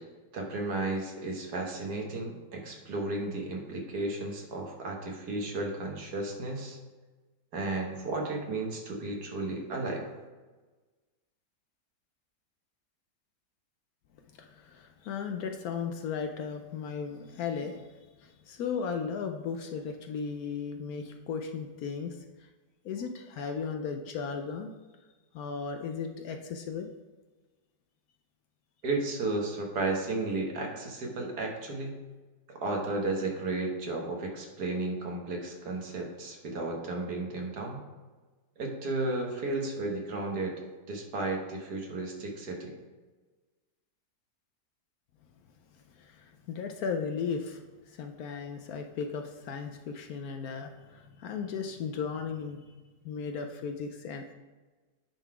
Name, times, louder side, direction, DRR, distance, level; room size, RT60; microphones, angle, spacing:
voice 1, 0.3-6.8 7.5-10.1 28.8-32.0 32.5-37.8 38.6-42.7, right 2 dB, 65° right, 1 dB, 1.7 m, -33 dB
voice 2, 14.4-22.5 22.8-24.7 25.3-26.9 46.0-52.8 53.0-54.3, left 6 dB, 70° left, 5 dB, 1.0 m, -36 dB
9.0 x 4.0 x 4.8 m, 1.3 s
omnidirectional pair, 1.9 m